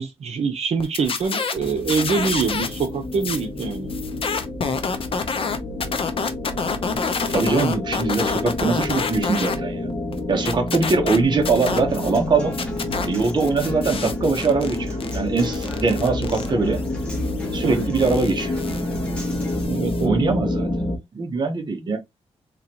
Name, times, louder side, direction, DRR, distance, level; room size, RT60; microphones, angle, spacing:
voice 1, 0.0-3.9 15.9-16.2 17.6-17.9 19.6-20.2 20.5-20.7, right 5 dB, 75° right, 0.8 m, -25 dB
sound 1, 0.8-2.9 3.1-9.6 9.9-12.2 12.5-20.0, left 5 dB, 55° left, 0.7 m, -29 dB
sound 2, 1.6-21.0, left 2 dB, 30° left, 1.3 m, -29 dB
voice 2, 7.3-9.8 10.3-12.7 13.0-16.8 17.5-18.5 20.0-20.7 21.1-22.0, right 4 dB, 40° right, 1.0 m, -22 dB
Human voice / Acoustic guitar, 11.7-19.7, equal, 10° left, 1.7 m, -38 dB
3.8 x 3.0 x 2.9 m
wide cardioid pair, 115°, 11 cm